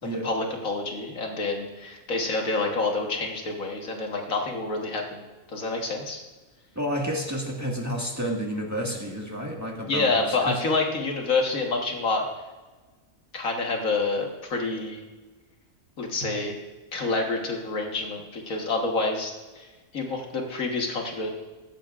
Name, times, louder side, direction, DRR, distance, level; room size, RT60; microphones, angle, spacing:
voice 1, 0.2-5.2 5.5-6.2 9.9-12.2 13.3-15.0 16.0-16.5 16.9-19.7 19.9-21.3, left 3 dB, 70° left, 1 dB, 1.8 m, -28 dB
voice 2, 6.7-10.6, equal, 10° right, -2 dB, 1.7 m, -30 dB
15.5 x 14.5 x 2.5 m, 1.2 s
omnidirectional pair, 1.5 m